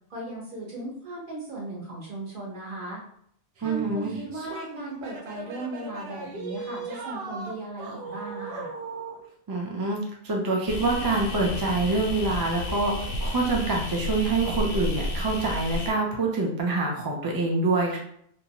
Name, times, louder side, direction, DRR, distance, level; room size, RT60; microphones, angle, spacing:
voice 1, 0.1-3.0 3.6-8.7, right 1 dB, 55° right, -4 dB, 1.1 m, -37 dB
voice 2, 3.6-4.2 9.5-10.0 10.2-18.0, right 3 dB, 35° right, -1 dB, 0.4 m, -26 dB
sound 1, 3.6-9.2, right 4 dB, 75° right, 0.8 m, -38 dB
sound 2, 10.7-15.9, left 1 dB, 55° left, 0.6 m, -32 dB
2.6 x 2.2 x 2.9 m, 0.68 s
omnidirectional pair, 1.1 m